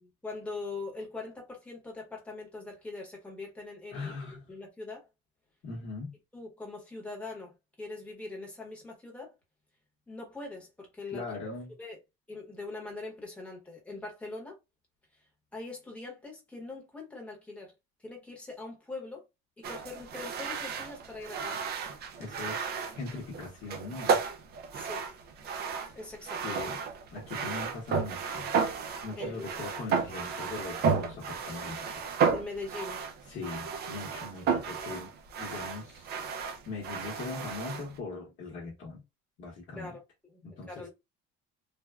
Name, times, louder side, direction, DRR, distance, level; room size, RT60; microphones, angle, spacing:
voice 1, 0.0-5.1 6.3-9.3 10.1-11.2 11.8-12.0 12.3-14.6 15.5-17.7 18.0-19.2 19.6-21.6 24.7-25.0 25.9-26.7 29.2-29.5 32.3-33.0 39.8-40.0 40.3-40.4 40.7-40.9, left 3 dB, 5° left, 0.9 m, -42 dB
voice 2, 3.9-4.4 5.6-6.1 11.1-11.7 22.2-24.2 26.4-26.8 27.1-28.5 29.0-32.1 33.3-35.1 35.4-36.4 36.7-39.0 39.4-39.9 40.4-40.9, left 3 dB, 40° left, 0.9 m, -40 dB
sound 1, 19.6-38.0, right 5 dB, 35° right, 0.4 m, -33 dB
3.4 x 2.1 x 2.3 m
cardioid pair, 170°, 30 cm